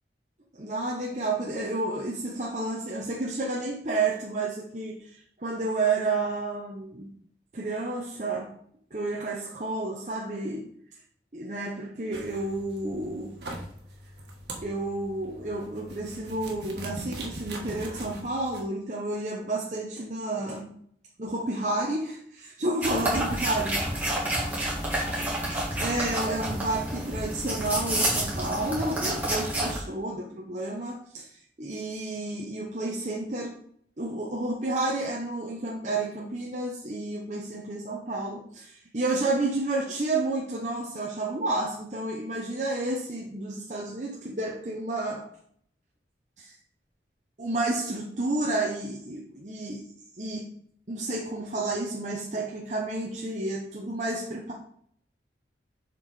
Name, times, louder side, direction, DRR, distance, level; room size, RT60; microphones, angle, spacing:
voice 1, 0.5-7.1 7.5-8.5 8.9-10.7 11.3-13.4 14.6-20.7 21.2-24.0 25.8-33.6 34.0-45.3 46.4-46.5 47.4-49.8 50.2-50.5 50.9-54.5, right 2 dB, 40° right, -3 dB, 0.9 m, -31 dB
sound 1, 12.1-18.6, right 1 dB, 70° right, 1.5 m, -41 dB
sound 2, 22.8-29.8, right 1 dB, 10° right, 2.0 m, -29 dB
7.2 x 4.7 x 4.1 m, 0.64 s
head